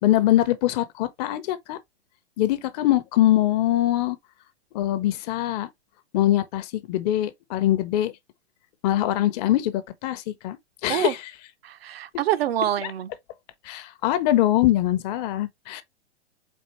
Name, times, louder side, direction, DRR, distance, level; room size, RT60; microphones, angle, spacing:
voice 1, 0.0-1.8 2.4-4.2 4.7-5.7 6.1-8.1 8.8-11.2 13.6-15.8, left 13 dB, 40° left, 0.7 m, -23 dB
voice 2, 11.6-13.1, right 11 dB, 60° right, 0.7 m, -26 dB
4.4 x 3.9 x 3.0 m
hypercardioid pair, 120°, 34 cm